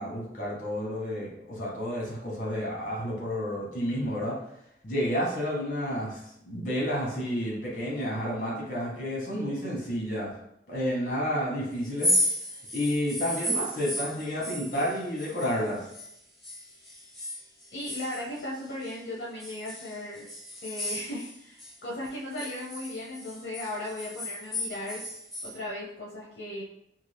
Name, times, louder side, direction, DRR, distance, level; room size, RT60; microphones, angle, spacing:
voice 1, 0.0-4.4 4.8-10.3 10.7-12.1 12.7-15.8, equal, 45° left, -3 dB, 1.1 m, -30 dB
sound 1, 11.9-16.1 16.4-19.0 19.4-21.7 22.0-25.5, equal, ahead, 0.6 m, -33 dB
voice 2, 17.7-20.3 20.6-25.1 25.4-26.6, left 1 dB, 65° left, -5 dB, 0.6 m, -37 dB
2.7 x 2.4 x 3.3 m, 0.75 s
head